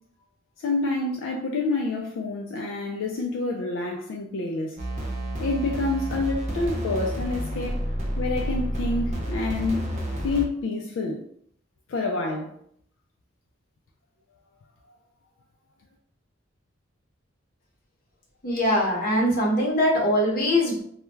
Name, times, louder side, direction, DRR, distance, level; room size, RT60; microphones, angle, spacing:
voice 1, 0.6-4.8 5.4-7.8 8.2-9.8 10.2-11.2 11.9-12.5, left 3 dB, 75° left, 0.3 m, -28 dB
sound 1, 4.8-10.5, equal, 35° right, 0.5 m, -30 dB
voice 2, 18.4-20.8, left 1 dB, 50° left, 0.8 m, -22 dB
2.3 x 2.1 x 3.1 m
head